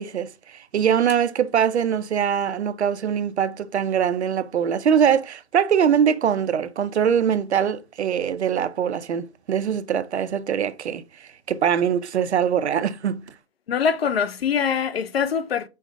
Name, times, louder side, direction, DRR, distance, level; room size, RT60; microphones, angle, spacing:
voice 1, 0.0-13.2, right 8 dB, 85° right, 0.5 m, -22 dB
voice 2, 13.7-15.7, left 7 dB, 65° left, 0.5 m, -23 dB
5.4 x 2.1 x 3.5 m
hypercardioid pair, 170°, 33 cm